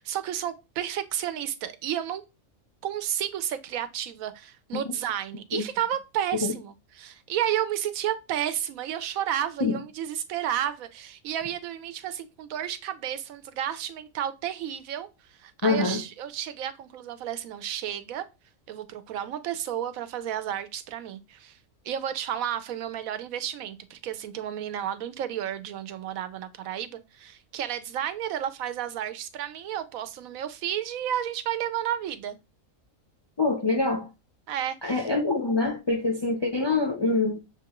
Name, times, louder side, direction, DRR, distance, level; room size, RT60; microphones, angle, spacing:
voice 1, 0.0-2.2 2.8-18.2 18.7-21.6 21.8-32.4 34.5-35.0, right 10 dB, 90° right, 1.1 m, -32 dB
voice 2, 15.6-16.0 33.4-34.1 34.8-37.4, left 3 dB, 40° left, 0.3 m, -25 dB
6.6 x 2.3 x 2.9 m
omnidirectional pair, 1.4 m